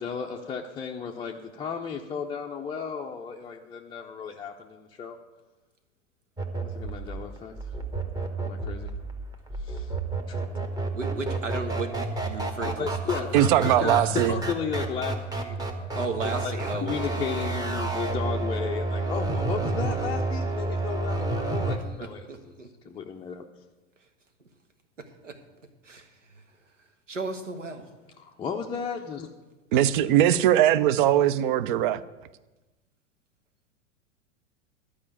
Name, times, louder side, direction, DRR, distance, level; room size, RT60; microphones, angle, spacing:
voice 1, 0.0-5.2 6.6-7.5 8.5-8.9 9.6-9.9 10.3-10.4 12.6-13.3 13.8-14.0 14.3-15.6 16.2-16.6 16.8-22.2 22.8-23.4 28.2-29.3, left 6 dB, 15° left, -1 dB, 0.5 m, -34 dB
sound 1, 6.4-21.8, right 2 dB, 10° right, 1.1 m, -30 dB
voice 2, 10.9-13.3 13.6-14.2 15.9-17.8 22.0-22.7 24.0-24.1 25.0-25.4 25.8-27.9, right 3 dB, 80° right, 6 dB, 1.4 m, -36 dB
voice 3, 13.3-14.4 29.7-32.0, right 11 dB, 45° right, 16 dB, 0.6 m, -21 dB
11.5 x 5.0 x 8.5 m, 1.1 s
figure-of-eight pair, 90°, 36 cm